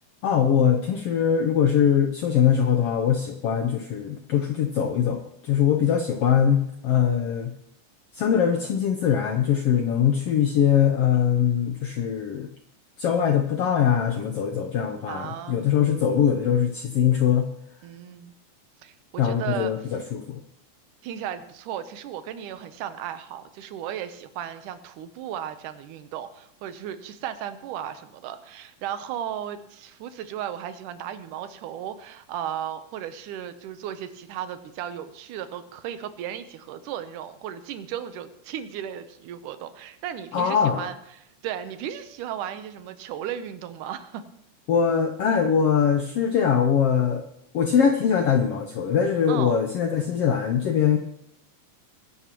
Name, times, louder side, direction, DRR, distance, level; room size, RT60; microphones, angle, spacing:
voice 1, 0.2-7.5 8.1-12.5 13.0-17.5 19.2-20.4 40.3-40.9 44.7-47.2 47.5-51.0, left 8 dB, 70° left, 5 dB, 1.4 m, -22 dB
voice 2, 15.1-15.7 17.8-18.3 18.8-19.7 21.0-44.2 49.3-49.6, right 10 dB, 85° right, 10 dB, 2.4 m, -35 dB
22.0 x 11.0 x 3.0 m, 0.74 s
omnidirectional pair, 3.6 m